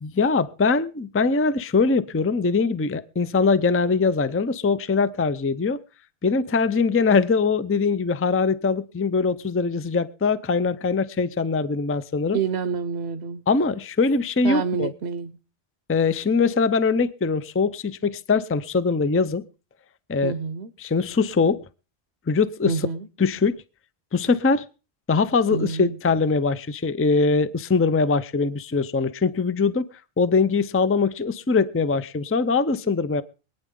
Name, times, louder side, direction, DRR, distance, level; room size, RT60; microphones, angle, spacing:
voice 1, 0.0-5.8 6.2-12.4 13.5-14.9 15.9-19.4 20.1-20.3 20.8-21.6 22.3-22.9 23.2-23.6 24.1-24.7 25.1-29.9 30.2-33.2, left 4 dB, 20° left, 14 dB, 0.4 m, -22 dB
voice 2, 12.3-13.4 14.4-15.4 20.2-20.7 22.6-23.1 25.5-26.0, right 6 dB, 80° right, 10 dB, 1.1 m, -28 dB
24.5 x 9.3 x 3.7 m, 0.34 s
omnidirectional pair, 1.1 m